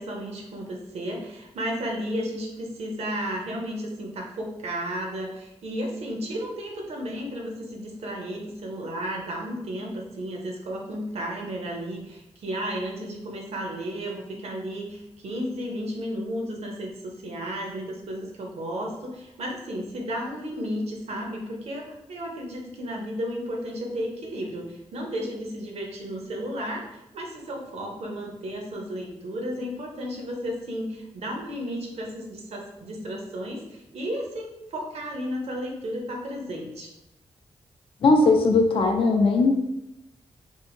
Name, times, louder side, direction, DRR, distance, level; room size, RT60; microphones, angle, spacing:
voice 1, 0.0-26.8 27.1-36.9, equal, 70° right, 0 dB, 0.7 m, -33 dB
voice 2, 38.0-39.5, left 3 dB, 55° left, 3 dB, 0.4 m, -19 dB
2.7 x 2.5 x 2.7 m, 0.91 s
wide cardioid pair, 130°, 11 cm